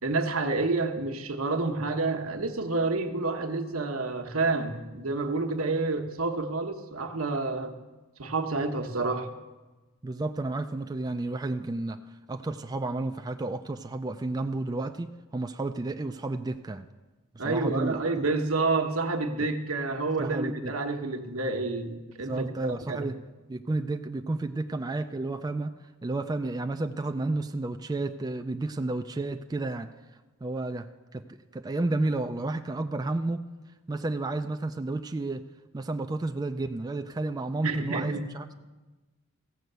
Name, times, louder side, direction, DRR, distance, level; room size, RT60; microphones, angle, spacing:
voice 1, 0.0-7.7 8.2-9.3 17.4-23.1 37.6-38.3, right 3 dB, 80° right, 5 dB, 1.1 m, -29 dB
voice 2, 10.0-12.0 12.3-16.9 17.3-18.0 20.2-20.7 22.2-23.1 23.5-25.7 26.0-29.9 30.4-30.9 31.1-31.2 31.5-33.4 33.9-35.4 35.7-38.5, right 2 dB, 20° right, 6 dB, 0.3 m, -31 dB
15.0 x 6.5 x 7.9 m, 1.2 s
head